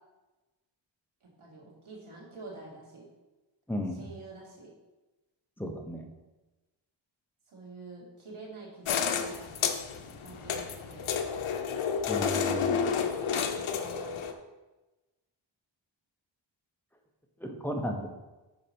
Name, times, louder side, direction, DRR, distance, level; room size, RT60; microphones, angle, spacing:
voice 1, 1.2-3.1 3.9-4.7 7.5-11.1 12.4-14.3, right 3 dB, 80° right, -3 dB, 2.4 m, -48 dB
voice 2, 3.7-4.0 5.6-6.0 12.1-12.8 17.4-18.1, equal, 5° left, 2 dB, 1.0 m, -34 dB
sound 1, 8.9-14.3, left 7 dB, 85° left, 0.7 m, -30 dB
7.2 x 5.0 x 5.2 m, 1.1 s
wide cardioid pair, 110°, 48 cm